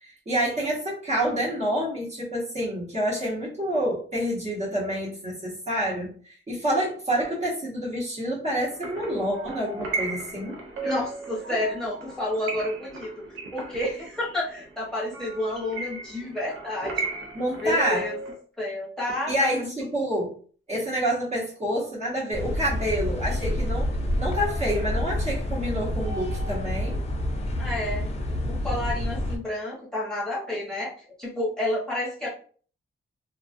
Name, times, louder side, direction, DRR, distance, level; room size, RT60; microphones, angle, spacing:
voice 1, 0.0-10.6 11.5-11.6 17.3-18.1 19.3-20.3 20.7-23.9 24.2-27.0, equal, 35° right, -6 dB, 0.9 m, -28 dB
sound 1, 8.6-18.3, right 3 dB, 80° right, 0.6 m, -36 dB
voice 2, 10.8-13.1 13.5-17.1 17.6-18.2 18.6-19.7 27.6-28.1 28.5-30.9 31.2-32.3, left 1 dB, 5° left, -8 dB, 0.9 m, -30 dB
sound 2, 22.3-29.4, left 1 dB, 30° left, 0.4 m, -28 dB
2.3 x 2.2 x 2.5 m, 0.44 s
wide cardioid pair, 160°, 21 cm